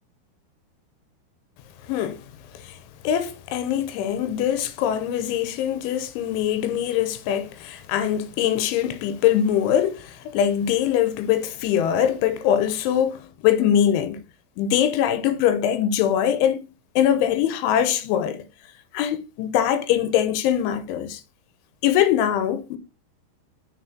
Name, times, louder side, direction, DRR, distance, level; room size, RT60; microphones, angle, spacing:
voice 1, 1.8-2.2 2.5-2.8 3.0-14.2 14.6-16.6 17.0-18.4 18.9-21.2 21.8-22.8, left 10 dB, 85° left, 3.4 m, -22 dB
7.8 x 6.1 x 4.4 m
omnidirectional pair, 5.4 m